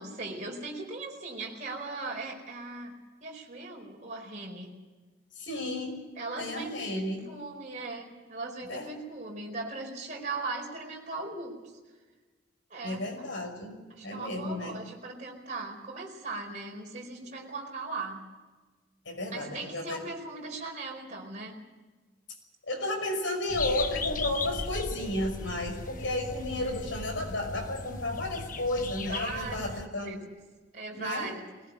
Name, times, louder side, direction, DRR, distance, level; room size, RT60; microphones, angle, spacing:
voice 1, 0.0-4.7 6.2-11.7 12.7-13.3 13.9-18.2 19.3-21.6 29.1-29.6 30.0-30.2 30.7-31.4, right 3 dB, 40° right, -1 dB, 4.8 m, -39 dB
voice 2, 5.3-6.0 6.4-7.2 8.7-8.9 12.8-14.8 19.1-20.0 22.7-30.2 30.9-31.3, left 1 dB, 80° left, 3 dB, 5.8 m, -33 dB
sound 1, 23.5-29.9, left 3 dB, 45° left, 1.1 m, -37 dB
20.5 x 19.0 x 8.1 m, 1.3 s
head